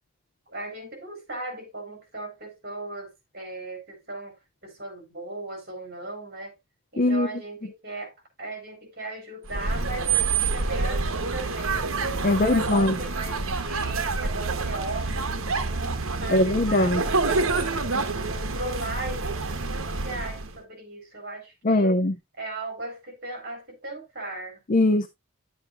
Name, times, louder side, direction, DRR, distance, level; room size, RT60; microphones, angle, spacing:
voice 1, 0.5-4.3 4.6-6.5 6.9-8.1 8.4-11.9 12.3-17.9 18.3-21.9 22.4-24.6, right 2 dB, 45° right, 3.8 m, -37 dB
voice 2, 7.0-7.3 12.2-12.9 16.3-17.0 21.6-22.1 24.7-25.1, left 1 dB, 35° left, 0.5 m, -21 dB
sound 1, 9.4-20.6, right 4 dB, 70° right, 1.1 m, -27 dB
10.5 x 7.7 x 2.5 m
head